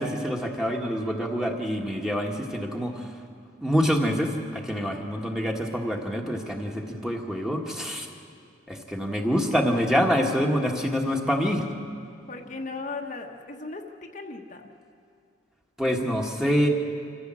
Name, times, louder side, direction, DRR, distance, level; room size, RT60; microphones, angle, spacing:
voice 1, 0.0-3.1 3.6-8.1 8.7-11.7 15.8-16.7, equal, 5° right, 1 dB, 1.6 m, -26 dB
voice 2, 12.3-14.7, left 3 dB, 45° left, 2 dB, 1.2 m, -37 dB
26.5 x 15.0 x 7.6 m, 2.3 s
head